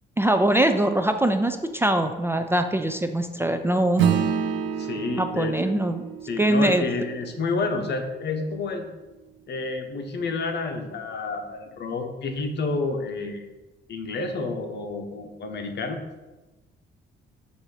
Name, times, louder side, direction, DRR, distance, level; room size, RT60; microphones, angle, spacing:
voice 1, 0.2-4.0 5.2-6.0 6.4-6.8, right 1 dB, 10° right, 7 dB, 0.3 m, -22 dB
Acoustic guitar / Strum, 4.0-8.8, right 7 dB, 75° right, 0.5 m, -28 dB
voice 2, 4.8-5.7 6.3-8.9 9.5-13.4 13.9-16.0, left 3 dB, 60° left, 5 dB, 0.9 m, -29 dB
7.3 x 2.7 x 4.8 m, 1.1 s
cardioid pair, 90°, 20 cm